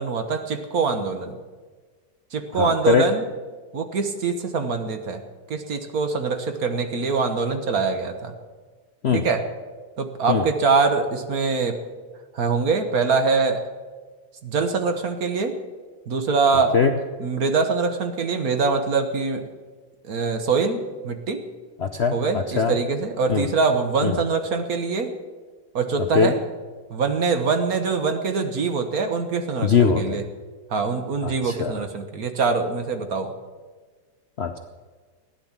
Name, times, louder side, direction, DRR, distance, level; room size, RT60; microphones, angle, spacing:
voice 1, 0.0-1.4 2.3-3.3 3.7-5.2 5.5-8.3 9.1-9.4 10.0-11.8 12.3-13.6 14.4-15.5 16.1-16.7 17.2-19.4 20.0-21.4 22.1-25.1 25.7-26.4 26.9-30.2 30.7-33.3, right 4 dB, 55° right, 7 dB, 1.6 m, -23 dB
voice 2, 2.5-3.0 9.0-9.2 10.3-10.5 16.7-16.9 21.8-22.8 23.3-23.5 24.0-24.2 26.1-26.3 29.6-30.2 31.2-31.7 34.4-34.6, left 6 dB, 55° left, 5 dB, 0.7 m, -21 dB
15.5 x 10.5 x 7.3 m, 1.4 s
omnidirectional pair, 1.9 m